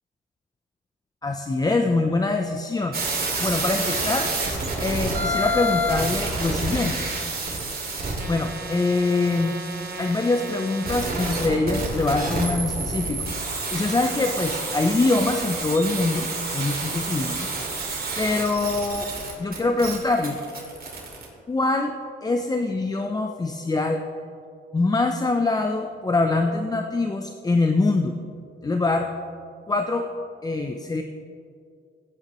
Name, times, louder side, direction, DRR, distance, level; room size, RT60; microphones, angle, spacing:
voice 1, 1.2-3.0 3.4-4.3 4.8-7.0 8.3-9.6 10.0-13.3 13.7-17.9 18.2-19.1 19.4-20.4 21.5-21.9 22.2-24.0 24.7-28.2 28.6-29.1 29.7-30.1 30.4-31.0, left 3 dB, 20° left, 5 dB, 0.5 m, -24 dB
sound 1, 2.9-21.3, right 2 dB, 45° right, 2.5 m, -29 dB
16.0 x 8.7 x 3.1 m, 2.4 s
cardioid pair, 100°, 21 cm